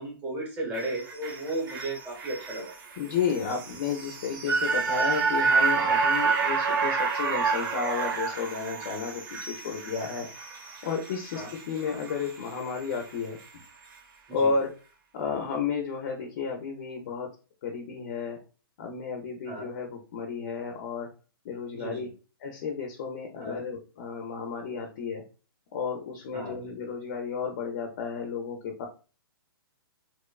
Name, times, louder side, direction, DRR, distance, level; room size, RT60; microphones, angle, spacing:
voice 1, 0.0-2.7 11.3-11.5 14.3-14.5 19.5-19.7 21.7-22.1 23.4-23.6 26.3-26.6, right 2 dB, 10° right, -1 dB, 0.8 m, -35 dB
sound 1, 0.7-13.1 13.4-13.5, right 5 dB, 60° right, 0.9 m, -29 dB
voice 2, 3.0-10.3 10.8-13.6 14.3-14.7 15.1-17.3 17.6-18.4 18.8-21.1 21.4-22.1 22.4-25.2 25.7-28.9, left 5 dB, 30° left, 2 dB, 0.4 m, -32 dB
2.9 x 2.1 x 2.2 m, 0.35 s
hypercardioid pair, 165°, 13 cm